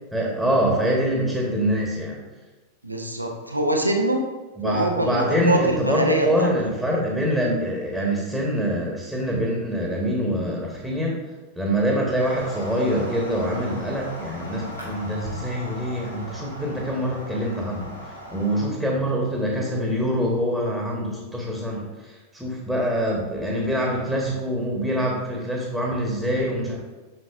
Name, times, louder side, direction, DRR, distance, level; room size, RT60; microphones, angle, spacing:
voice 1, 0.1-2.2 4.6-11.2 11.6-17.9 18.3-21.8 22.3-26.8, equal, ahead, -2 dB, 1.3 m, -25 dB
voice 2, 2.8-4.2 4.6-6.5, right 2 dB, 85° right, 3 dB, 0.8 m, -23 dB
sound 1, 12.2-18.7, equal, 90° left, 1.4 m, -38 dB
7.6 x 5.9 x 2.5 m, 1.2 s
figure-of-eight pair, 90°, 0 cm